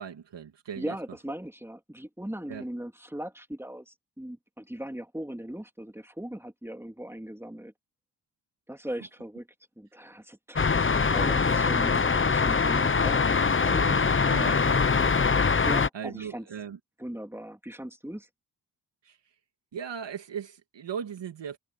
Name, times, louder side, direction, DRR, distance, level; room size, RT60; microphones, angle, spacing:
voice 1, 0.0-0.9 2.5-2.6 14.3-15.7 15.9-16.8 19.0-19.2 19.7-21.6, right 7 dB, 80° right, 2.3 m, -38 dB
voice 2, 0.7-7.7 8.7-9.5 9.8-14.0 15.6-16.5 17.0-18.3, right 1 dB, 5° right, 3.1 m, -39 dB
sound 1, 10.6-15.9, left 5 dB, 30° left, 0.9 m, -23 dB
cardioid pair, 55°, 42 cm